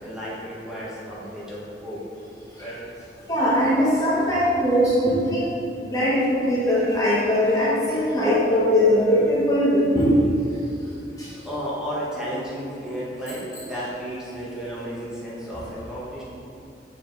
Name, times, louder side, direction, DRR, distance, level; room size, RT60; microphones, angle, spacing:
voice 1, 0.0-2.0 2.5-2.8 11.4-16.2, equal, 5° right, -9 dB, 1.4 m, -33 dB
voice 2, 3.3-5.5 5.8-10.1 11.2-11.3, equal, 20° left, -9 dB, 1.2 m, -20 dB
6.9 x 4.6 x 3.9 m, 2.7 s
head